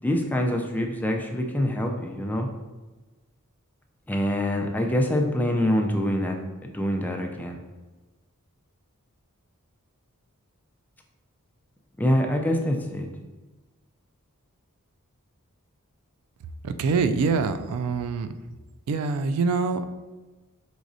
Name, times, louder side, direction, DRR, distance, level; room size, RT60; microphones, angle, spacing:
voice 1, 0.0-2.5 4.1-7.6 12.0-13.1, left 1 dB, 10° left, 2 dB, 0.4 m, -25 dB
voice 2, 16.6-18.3 18.9-19.8, right 4 dB, 85° right, 9 dB, 0.3 m, -25 dB
4.8 x 4.0 x 2.6 m, 1.2 s
head